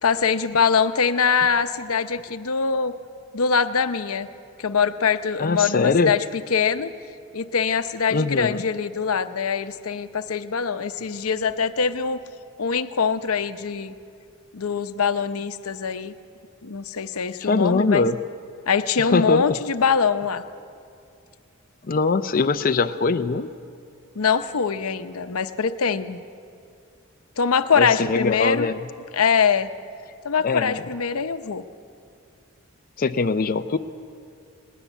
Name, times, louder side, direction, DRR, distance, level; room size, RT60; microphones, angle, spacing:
voice 1, 0.0-2.9 3.3-4.3 4.6-6.2 6.5-6.9 7.3-12.2 12.6-13.9 14.5-16.1 16.6-18.1 18.7-20.4 24.2-26.2 27.4-28.7 29.1-29.7 30.2-31.6, left 6 dB, 90° left, 10 dB, 0.8 m, -23 dB
voice 2, 5.4-6.1 8.1-8.6 17.4-18.2 19.0-19.5 21.9-23.5 27.8-28.8 30.4-30.9 33.0-33.8, left 4 dB, 40° left, 8 dB, 0.5 m, -22 dB
20.5 x 18.5 x 8.1 m, 2.5 s
head